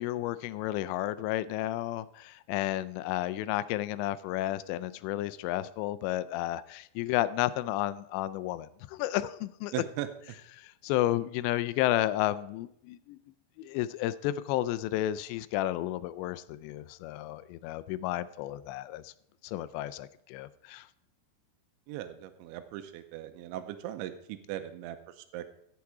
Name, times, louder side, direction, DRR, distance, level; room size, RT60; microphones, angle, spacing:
voice 1, 0.0-9.7 10.5-13.2 13.6-19.1 19.4-20.9, left 14 dB, 85° left, 15 dB, 2.7 m, -32 dB
voice 2, 9.7-10.1 21.9-25.5, right 13 dB, 90° right, 9 dB, 3.0 m, -39 dB
15.0 x 7.2 x 4.7 m, 0.74 s
omnidirectional pair, 5.3 m